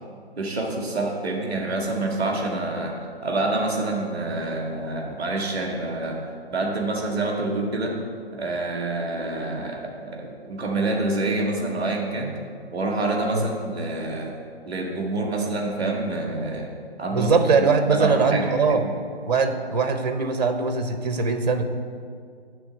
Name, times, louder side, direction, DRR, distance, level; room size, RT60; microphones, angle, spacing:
voice 1, 0.4-8.0 8.3-12.4 12.7-14.4 14.7-16.7 17.0-17.3 17.9-18.9, right 2 dB, 5° right, -13 dB, 0.6 m, -27 dB
voice 2, 17.1-18.8 19.2-21.7, right 4 dB, 40° right, 8 dB, 0.7 m, -21 dB
10.5 x 3.5 x 7.0 m, 2.2 s
hypercardioid pair, 165°, 32 cm